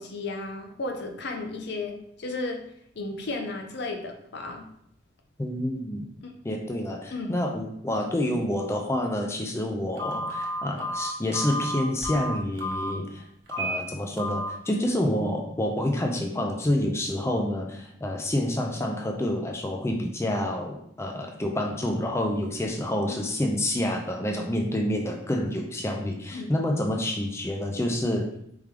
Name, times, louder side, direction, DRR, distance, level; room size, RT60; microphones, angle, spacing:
voice 1, 0.0-2.6 3.0-4.6 6.2-6.6 7.1-7.4 23.1-23.3 26.3-26.5, left 2 dB, 60° left, 4 dB, 0.6 m, -34 dB
voice 2, 5.4-6.1 6.4-28.3, left 1 dB, 15° left, 2 dB, 0.4 m, -28 dB
Telephone, 10.0-12.9 13.5-13.8 14.2-14.5, equal, 70° right, 1.0 m, -31 dB
4.5 x 3.6 x 3.2 m, 0.73 s
head